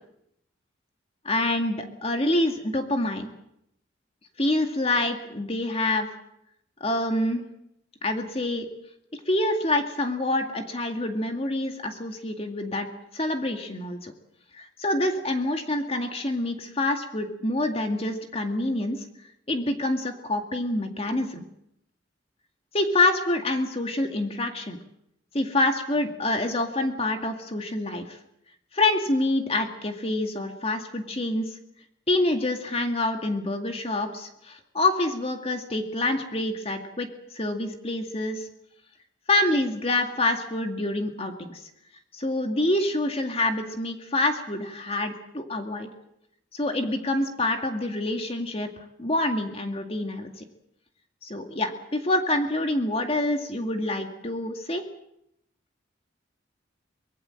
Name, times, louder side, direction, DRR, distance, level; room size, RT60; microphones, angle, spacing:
voice 1, 1.3-3.3 4.4-6.1 6.8-7.4 8.0-8.7 9.3-12.9 13.1-14.1 14.5-19.0 19.5-21.4 22.7-24.8 25.3-28.2 28.7-31.4 32.1-37.1 37.3-38.5 39.3-41.6 42.1-45.9 46.5-48.7 49.0-50.4 51.2-54.8, left 2 dB, 30° left, 5 dB, 2.1 m, -26 dB
24.5 x 20.5 x 7.8 m, 0.77 s
head